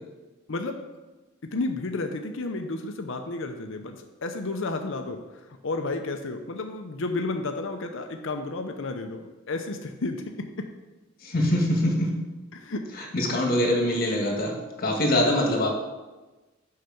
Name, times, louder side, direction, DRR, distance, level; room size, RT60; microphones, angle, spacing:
voice 1, 0.5-0.8 1.4-5.2 5.6-10.7 12.5-12.9, left 2 dB, 65° left, 5 dB, 0.7 m, -32 dB
voice 2, 11.2-12.1 12.9-15.7, left 1 dB, 45° left, 0 dB, 1.9 m, -24 dB
6.5 x 5.7 x 7.0 m, 1.2 s
head